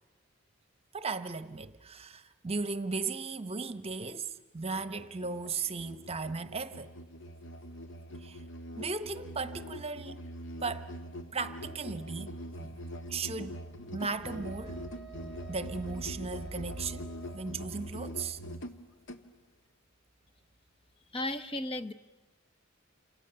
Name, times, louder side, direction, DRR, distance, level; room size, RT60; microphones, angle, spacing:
voice 1, 0.9-6.9 8.2-8.4 8.7-10.2 10.6-10.9 11.3-12.8 13.1-13.6 13.9-14.8 15.5-18.4, right 4 dB, 30° right, 1.0 m, -36 dB
Musical instrument, 4.6-19.3, equal, 60° left, 1.4 m, -43 dB
Wind instrument woodwind instrument, 14.0-17.5, right 5 dB, ahead, 5.4 m, -52 dB
voice 2, 21.1-21.9, left 1 dB, 25° left, 0.8 m, -34 dB
29.5 x 27.0 x 6.9 m
head